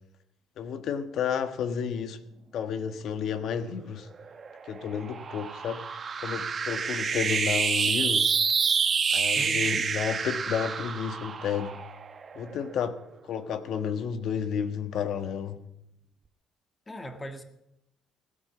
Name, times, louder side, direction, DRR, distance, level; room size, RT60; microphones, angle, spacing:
voice 1, 0.6-2.2 2.5-4.1 4.7-5.9 6.2-8.3 9.1-11.8 12.3-13.0 13.2-15.6, left 7 dB, 60° left, 1.3 m, -31 dB
sound 1, 4.2-12.8, right 6 dB, 35° right, 1.2 m, -28 dB
voice 2, 9.4-9.8 16.9-17.4, equal, 15° left, 1.8 m, -38 dB
17.0 x 9.8 x 8.4 m
cardioid pair, 120°, 0 cm